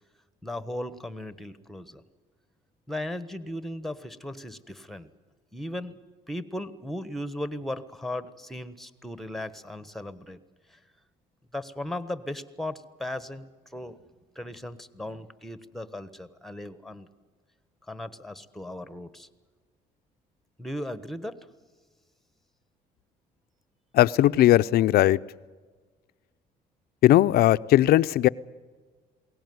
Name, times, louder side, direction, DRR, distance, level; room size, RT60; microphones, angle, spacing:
voice 1, 0.4-2.0 2.9-5.1 5.5-6.0 6.3-10.4 10.7-10.8 11.5-14.1 14.3-17.1 17.9-19.3 20.6-21.4, left 1 dB, ahead, 1.3 m, -37 dB
voice 2, 23.9-25.2 27.0-28.3, left 14 dB, 65° left, 0.6 m, -18 dB
21.5 x 18.0 x 9.5 m
cardioid pair, 110°, 17 cm